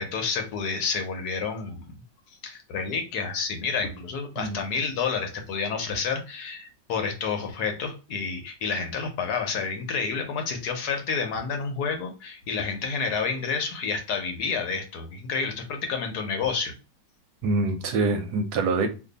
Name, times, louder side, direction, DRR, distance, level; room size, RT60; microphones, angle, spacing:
voice 1, 0.0-2.0 2.4-16.7, left 5 dB, 70° left, 1.1 m, -29 dB
voice 2, 17.4-18.9, right 3 dB, 70° right, 1.0 m, -25 dB
2.6 x 2.6 x 3.8 m
omnidirectional pair, 1.9 m